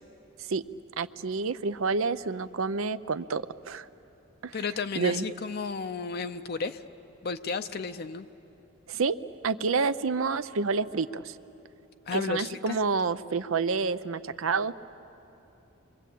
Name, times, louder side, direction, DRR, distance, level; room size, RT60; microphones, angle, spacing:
voice 1, 1.0-3.9 4.4-4.6 4.9-5.3 8.9-9.2 9.4-11.4 12.1-14.7, right 4 dB, 75° right, 13 dB, 0.6 m, -28 dB
voice 2, 4.5-6.8 7.2-8.3 12.1-12.8, left 4 dB, 50° left, 8 dB, 0.6 m, -33 dB
29.0 x 23.5 x 8.4 m, 3.0 s
head